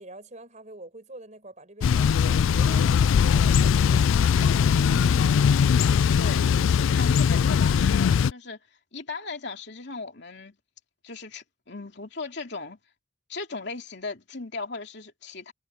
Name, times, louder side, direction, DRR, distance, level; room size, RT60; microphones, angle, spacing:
voice 1, 0.0-4.0 4.4-4.5, right 2 dB, 35° right, 5.3 m, -45 dB
Thunder / Bicycle, 1.8-8.3, left 7 dB, 80° left, 0.3 m, -20 dB
voice 2, 4.7-5.7 6.1-8.6 8.9-10.6 11.0-12.8 13.3-15.5, left 3 dB, 60° left, 3.0 m, -37 dB
head